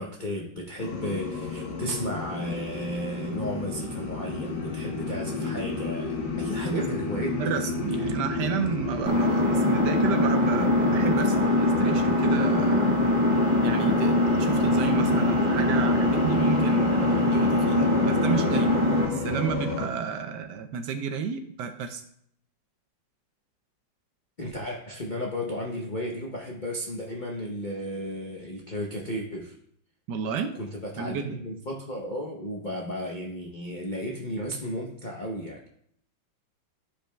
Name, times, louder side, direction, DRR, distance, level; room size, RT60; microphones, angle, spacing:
voice 1, 0.0-7.4 24.4-29.5 30.6-35.6, equal, 60° left, -1 dB, 0.5 m, -34 dB
sound 1, 0.8-19.9, left 3 dB, 75° left, 1.8 m, -31 dB
voice 2, 7.4-13.0 13.6-22.0 30.1-30.5 31.0-31.4, right 6 dB, 75° right, 7 dB, 1.1 m, -31 dB
Engine, 9.0-19.0, left 1 dB, 5° right, 2.1 m, -23 dB
11.5 x 5.1 x 2.2 m, 0.67 s
omnidirectional pair, 2.1 m